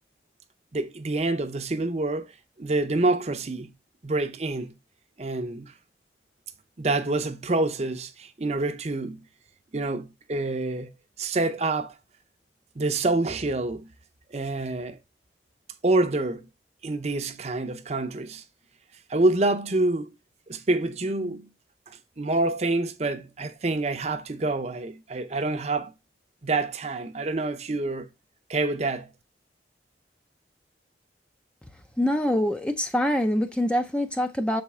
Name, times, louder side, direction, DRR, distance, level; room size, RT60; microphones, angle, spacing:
voice 1, 0.7-2.3 2.6-3.7 4.0-4.8 5.2-5.7 6.8-9.2 9.7-10.9 11.2-11.9 12.8-13.9 14.3-15.0 15.8-16.4 16.8-18.4 19.1-20.1 20.5-21.5 21.9-25.9 26.4-28.1 28.5-29.1, right 2 dB, 40° right, 0.6 m, -27 dB
voice 2, 32.0-34.6, left 1 dB, 5° left, 0.4 m, -24 dB
6.8 x 4.3 x 3.5 m
head